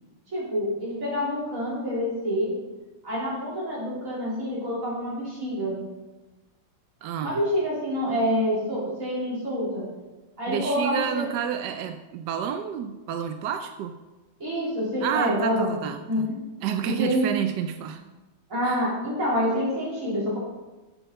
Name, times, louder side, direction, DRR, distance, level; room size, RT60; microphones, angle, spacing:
voice 1, 0.3-2.5 3.0-5.8 7.2-9.9 10.4-11.3 14.4-15.7 16.1-16.4 16.8-17.3 18.5-20.4, equal, 40° right, -7 dB, 4.2 m, -27 dB
voice 2, 7.0-7.4 10.5-13.9 15.0-16.3 16.6-18.0 18.6-18.9, right 9 dB, 75° right, 7 dB, 1.0 m, -30 dB
8.9 x 7.7 x 5.6 m, 1.1 s
omnidirectional pair, 2.3 m